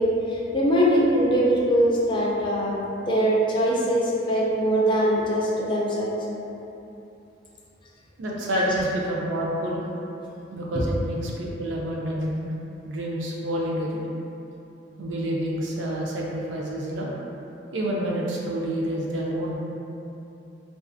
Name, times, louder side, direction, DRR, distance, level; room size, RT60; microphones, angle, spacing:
voice 1, 0.0-2.8 3.1-6.1 8.5-8.6 10.7-10.8, equal, 25° left, -5 dB, 0.3 m, -22 dB
voice 2, 8.2-9.8 10.5-12.5 12.8-14.0 15.0-17.1 17.7-19.6, right 1 dB, 75° right, -3 dB, 0.4 m, -28 dB
2.4 x 2.3 x 2.5 m, 2.9 s
head